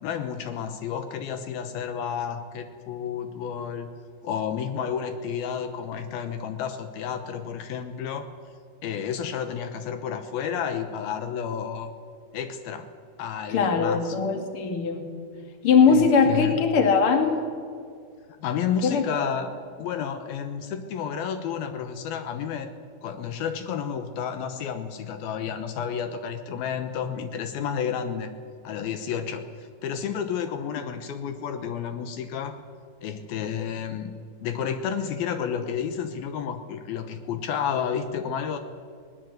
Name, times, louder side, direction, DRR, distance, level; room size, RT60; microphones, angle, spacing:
voice 1, 0.0-3.9 4.2-8.3 8.8-11.9 12.3-12.9 13.2-14.2 15.9-16.6 18.4-19.5 19.8-22.7 23.0-28.3 28.6-32.6 33.0-34.1 34.4-38.6, left 7 dB, 80° left, 8 dB, 2.9 m, -31 dB
voice 2, 13.5-15.1 15.6-17.4 18.8-19.3, left 5 dB, 40° left, 5 dB, 2.7 m, -21 dB
21.0 x 19.5 x 7.9 m, 2.2 s
omnidirectional pair, 4.4 m